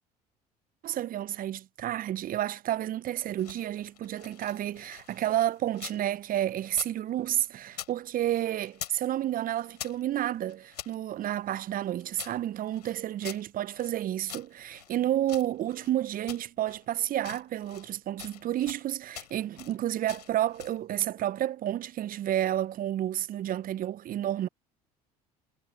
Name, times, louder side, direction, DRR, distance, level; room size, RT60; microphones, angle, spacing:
voice 1, 0.8-24.5, right 12 dB, 45° right, 0.8 m, -30 dB
sound 1, 3.2-6.0 6.3-9.1 9.3-11.0 11.5-14.0 14.3-15.9 16.3-16.9 17.2-17.9 18.2-18.9 19.1-19.8 20.1-20.8, left 11 dB, 85° left, 5.3 m, -45 dB
hypercardioid pair, 65°, 20 cm